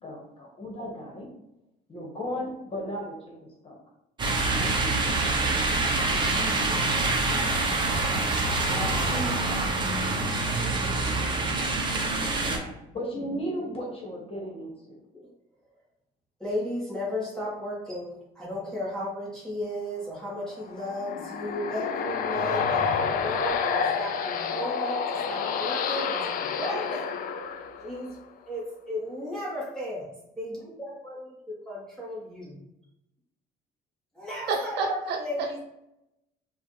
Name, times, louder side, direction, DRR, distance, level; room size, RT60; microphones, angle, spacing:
voice 1, 0.0-1.3 1.9-3.3 3.6-3.8 4.5-5.5 6.0-7.6 8.7-11.1 12.4-15.0, equal, 35° left, -1 dB, 1.5 m, -37 dB
sound 1, 4.2-12.6, right 3 dB, 25° right, 0.9 m, -26 dB
voice 2, 16.4-27.1 27.8-28.1 28.5-30.1 30.4-31.3 31.7-32.6 34.1-35.6, equal, 5° left, -7 dB, 1.6 m, -34 dB
sound 2, 20.6-28.2, left 6 dB, 55° left, 0.4 m, -29 dB
voice 3, 34.5-35.6, right 4 dB, 85° right, 3 dB, 0.7 m, -30 dB
5.3 x 2.5 x 3.2 m, 0.85 s
cardioid pair, 110°, 17 cm